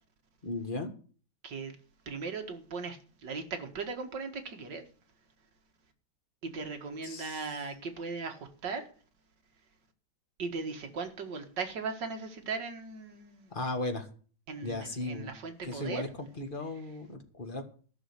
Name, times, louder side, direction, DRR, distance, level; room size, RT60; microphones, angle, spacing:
voice 1, 0.4-0.9 7.0-7.4 13.5-14.1 14.6-15.3 15.6-17.6, left 2 dB, 25° left, 1.7 m, -36 dB
voice 2, 1.4-1.8 2.1-4.8 6.4-8.8 10.4-13.5 14.5-16.1, right 4 dB, 65° right, 2.3 m, -38 dB
14.0 x 6.5 x 8.2 m
omnidirectional pair, 2.1 m